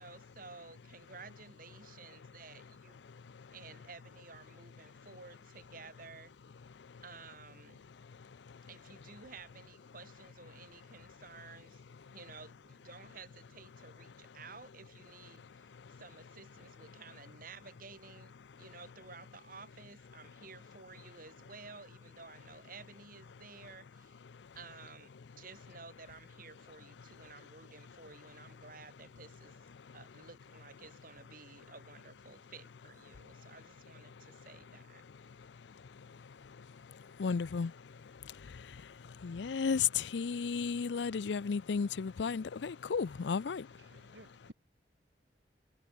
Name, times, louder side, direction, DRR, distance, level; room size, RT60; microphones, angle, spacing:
voice 1, 0.0-3.0 3.5-6.3 7.0-7.8 8.7-11.8 12.1-18.3 18.6-24.2 24.5-35.0, right 4 dB, 55° right, 6.6 m, -53 dB
voice 2, 3.1-3.5 6.8-7.0 8.0-8.6 15.8-16.0 24.3-24.5 29.7-29.9 34.2-34.3 35.3-35.5 35.9-43.8, left 6 dB, 90° left, 0.5 m, -36 dB
voice 3, 43.0-44.5, right 1 dB, 90° right, 6.8 m, -59 dB
head